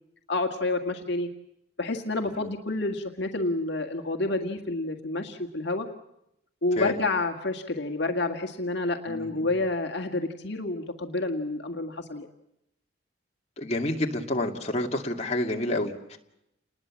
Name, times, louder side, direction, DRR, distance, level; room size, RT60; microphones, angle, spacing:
voice 1, 0.3-1.3 1.8-5.9 6.6-12.3, left 2 dB, 60° left, 4 dB, 1.9 m, -29 dB
voice 2, 9.1-9.5 13.6-16.2, left 1 dB, 35° left, 1 dB, 2.3 m, -29 dB
29.0 x 20.5 x 7.5 m, 0.82 s
head